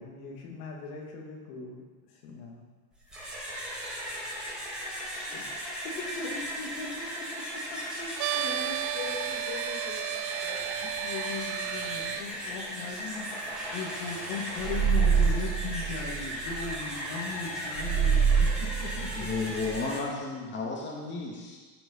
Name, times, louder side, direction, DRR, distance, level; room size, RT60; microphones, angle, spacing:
voice 1, 0.0-2.6, left 3 dB, 75° left, 0 dB, 2.7 m, -43 dB
sound 1, 2.9-20.0, equal, ahead, 3.3 m, -37 dB
voice 2, 5.2-19.3, left 5 dB, 55° left, -4 dB, 2.2 m, -39 dB
sound 2, 8.2-12.2, right 14 dB, 85° right, 0.6 m, -33 dB
sound 3, 14.6-16.7 17.8-19.8, right 6 dB, 50° right, 1.5 m, -26 dB
voice 3, 18.9-21.6, left 3 dB, 25° left, -2 dB, 2.4 m, -33 dB
14.5 x 6.0 x 5.6 m, 1.3 s
supercardioid pair, 125°, 47 cm